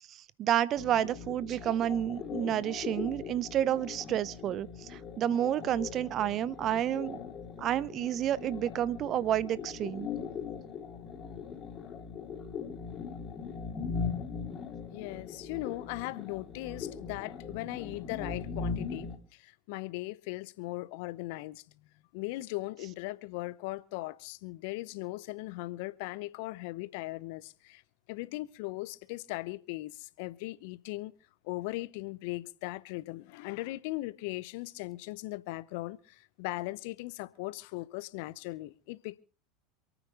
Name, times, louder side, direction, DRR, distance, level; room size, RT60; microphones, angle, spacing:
voice 1, 0.1-7.2 7.6-10.1, right 11 dB, 45° right, 0.6 m, -30 dB
sound 1, 0.8-19.2, left 5 dB, 35° left, 3.5 m, -40 dB
voice 2, 14.9-21.6 22.1-27.8 28.1-31.1 31.4-39.2, left 20 dB, 60° left, 0.8 m, -39 dB
27.5 x 9.3 x 3.8 m
hypercardioid pair, 80°, 0 cm